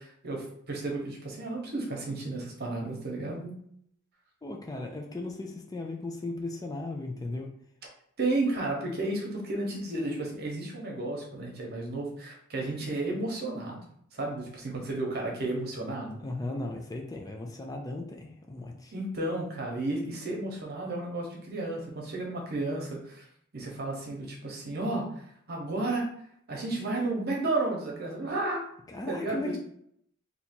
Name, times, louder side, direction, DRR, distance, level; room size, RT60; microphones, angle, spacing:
voice 1, 0.0-3.6 8.2-13.8 14.1-16.2 18.9-23.3 23.5-26.1 26.5-28.6 29.1-29.6, right 2 dB, 50° right, -1 dB, 1.0 m, -32 dB
voice 2, 4.4-7.5 16.2-18.9 28.9-29.6, left 2 dB, 20° left, 1 dB, 0.4 m, -36 dB
2.8 x 2.7 x 4.3 m, 0.68 s
head